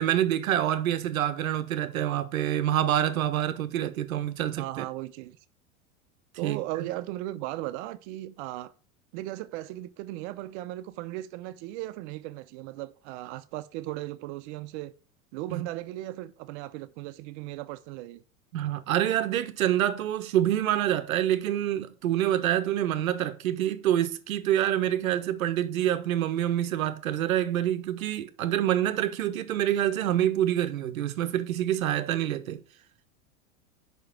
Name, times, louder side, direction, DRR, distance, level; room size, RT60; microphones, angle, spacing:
voice 1, 0.0-4.8 6.4-6.6 15.5-15.7 18.5-32.6, right 11 dB, 80° right, 0.9 m, -26 dB
voice 2, 4.6-5.4 6.4-8.7 9.1-14.9 15.3-18.2, right 16 dB, 55° right, 0.8 m, -37 dB
5.4 x 4.9 x 5.8 m
hypercardioid pair, 95°, 40 cm